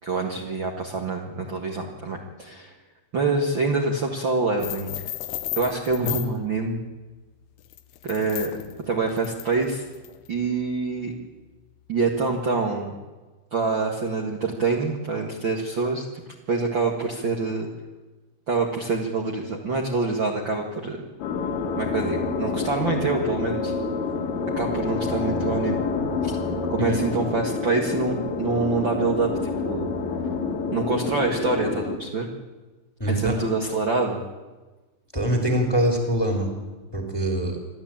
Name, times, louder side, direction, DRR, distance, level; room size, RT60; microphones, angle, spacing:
voice 1, 0.0-2.7 3.1-4.9 5.6-6.8 8.0-8.5 8.8-9.8 10.3-11.1 11.9-12.9 13.5-16.0 16.5-17.7 18.5-21.0 21.8-23.7 24.6-25.8 26.2-26.3 26.7-29.3 29.6-29.9 30.7-32.3 33.1-34.2, right 3 dB, 55° right, 0 dB, 1.3 m, -26 dB
Slow Chain Drops, 4.6-6.4 7.6-10.3, left 14 dB, 85° left, 3.5 m, -34 dB
sound 1, 21.2-32.0, left 4 dB, 70° left, 4.4 m, -28 dB
voice 2, 33.0-33.4 35.1-36.5 36.9-37.6, right 1 dB, 5° left, 3 dB, 2.2 m, -23 dB
28.5 x 12.5 x 8.9 m, 1.2 s
omnidirectional pair, 5.3 m